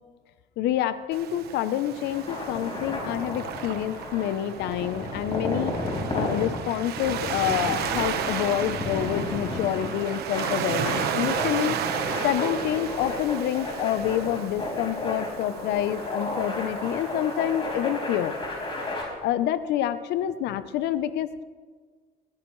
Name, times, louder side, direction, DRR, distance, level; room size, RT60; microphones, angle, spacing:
voice 1, 0.6-5.8 6.1-11.8 12.2-18.4 19.2-21.4, left 11 dB, 80° left, 13 dB, 0.7 m, -27 dB
Waves surf, 1.1-18.9, right 9 dB, 70° right, 1.2 m, -34 dB
sound 1, 2.0-19.0, left 1 dB, 35° left, 4.8 m, -33 dB
21.0 x 15.5 x 3.2 m, 1.5 s
cardioid pair, 110°, 17 cm